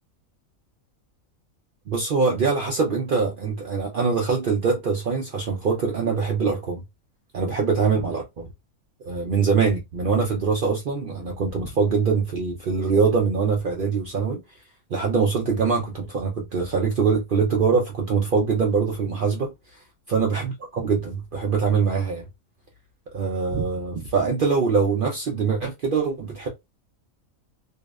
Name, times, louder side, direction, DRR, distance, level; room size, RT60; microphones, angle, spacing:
voice 1, 1.9-6.8 7.3-8.5 9.0-14.4 14.9-19.5 20.1-22.2 23.1-26.5, right 5 dB, 60° right, 0.5 m, -23 dB
2.7 x 2.1 x 2.2 m
omnidirectional pair, 1.4 m